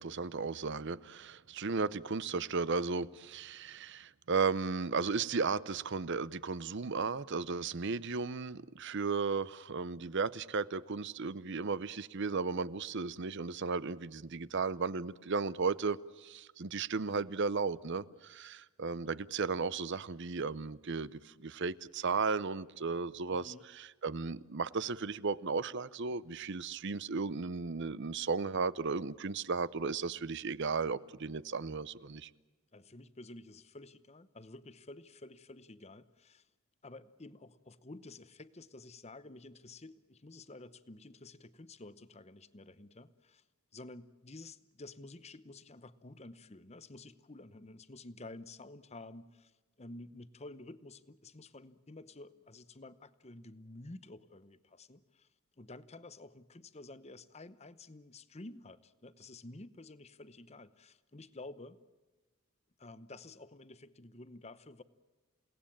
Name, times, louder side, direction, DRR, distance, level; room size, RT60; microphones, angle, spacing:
voice 1, 0.0-32.3, right 4 dB, 55° right, 0.7 m, -35 dB
voice 2, 23.3-23.7 32.7-36.5 36.8-43.4 43.7-55.3 55.6-61.8 62.8-64.8, left 2 dB, 30° left, 0.9 m, -51 dB
29.5 x 18.0 x 8.7 m
head